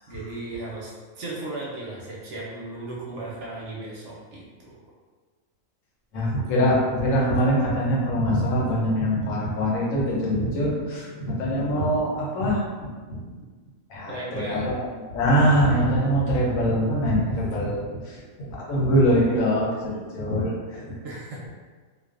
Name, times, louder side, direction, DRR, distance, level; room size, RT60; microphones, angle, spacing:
voice 1, 0.1-4.8 14.1-14.8 21.0-21.5, right 2 dB, 70° right, -4 dB, 0.8 m, -36 dB
voice 2, 6.1-12.6 13.9-14.7 15.1-20.8, equal, 75° left, -4 dB, 1.0 m, -23 dB
2.4 x 2.3 x 2.4 m, 1.4 s
omnidirectional pair, 1.4 m